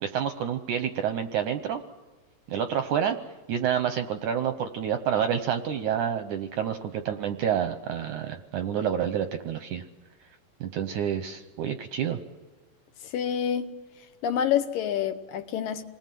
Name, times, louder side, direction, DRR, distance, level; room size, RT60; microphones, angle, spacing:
voice 1, 0.0-1.8 2.5-3.2 3.5-9.8 10.6-12.2, right 8 dB, 75° right, 1.9 m, -28 dB
voice 2, 13.0-13.7 14.2-15.8, left 9 dB, 70° left, 2.5 m, -27 dB
28.0 x 20.5 x 7.6 m
omnidirectional pair, 4.4 m